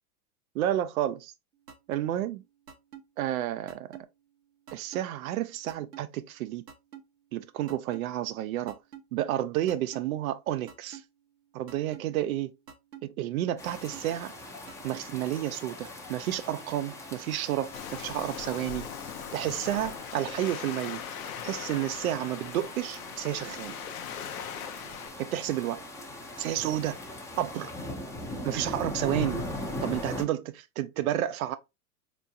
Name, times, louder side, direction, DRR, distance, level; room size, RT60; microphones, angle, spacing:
voice 1, 0.5-1.3 1.9-2.4 3.2-4.0 4.7-6.7 7.3-8.8 9.1-11.0 11.5-12.5 13.0-14.3 14.8-18.9 19.3-21.0 21.4-23.7 25.2-25.8 26.4-27.0 27.4-27.7 28.4-29.4 29.8-31.6, right 12 dB, 65° right, 0.6 m, -31 dB
sound 1, 1.7-2.0 2.7-3.0 3.7-4.0 4.7-5.0 5.7-6.0 6.7-7.0 7.7-8.0 8.7-9.0 9.7-10.0 10.7-11.0 11.7-12.0 12.7-13.0 13.7-14.0 14.7-15.0, right 8 dB, 85° right, 1.1 m, -45 dB
sound 2, 13.6-30.2, left 1 dB, 5° left, 0.7 m, -40 dB
Waves surf, 17.7-25.1, left 9 dB, 65° left, 0.7 m, -40 dB
4.3 x 3.1 x 2.4 m
hypercardioid pair, 105°, 46 cm